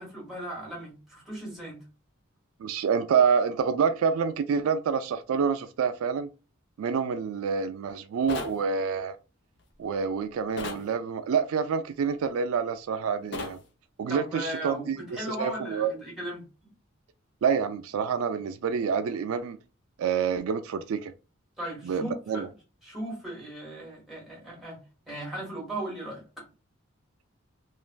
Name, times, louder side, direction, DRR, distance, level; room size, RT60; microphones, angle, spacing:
voice 1, 0.0-1.8 14.1-16.4 21.6-22.5 22.8-24.8 25.1-26.2, right 1 dB, ahead, 1.4 m, -37 dB
voice 2, 2.6-6.3 6.8-9.2 9.8-13.6 14.0-15.0 15.3-15.9 17.4-19.6 20.0-21.1 21.8-22.5, right 6 dB, 80° right, 0.3 m, -27 dB
sound 1, 8.3-8.6 10.6-10.9 13.3-13.6, left 2 dB, 55° left, 0.6 m, -34 dB
3.2 x 2.5 x 2.2 m
head